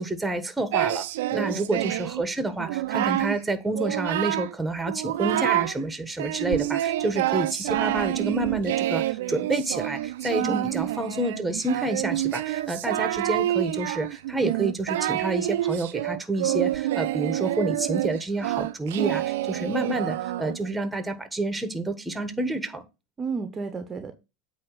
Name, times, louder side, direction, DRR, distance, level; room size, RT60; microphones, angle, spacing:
voice 1, 0.0-22.8, right 2 dB, 10° right, 1.3 m, -29 dB
Singing, 0.7-2.2 2.6-3.4 3.7-4.6 4.9-5.8 6.2-20.7, right 14 dB, 75° right, 0.5 m, -27 dB
voice 2, 1.3-1.6 10.4-10.8 23.2-24.1, right 4 dB, 25° right, 0.9 m, -32 dB
8.6 x 2.9 x 6.3 m
hypercardioid pair, 90°, 0 cm